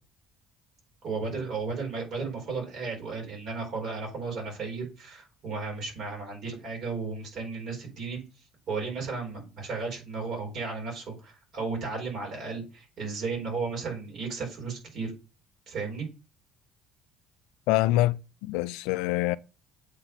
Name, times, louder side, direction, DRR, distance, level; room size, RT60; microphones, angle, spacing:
voice 1, 1.0-8.2 8.7-15.1 15.7-16.1, right 4 dB, 60° right, 4.4 m, -34 dB
voice 2, 17.7-19.4, left 17 dB, 75° left, 0.3 m, -25 dB
8.1 x 3.8 x 5.6 m
hypercardioid pair, 55°, 0 cm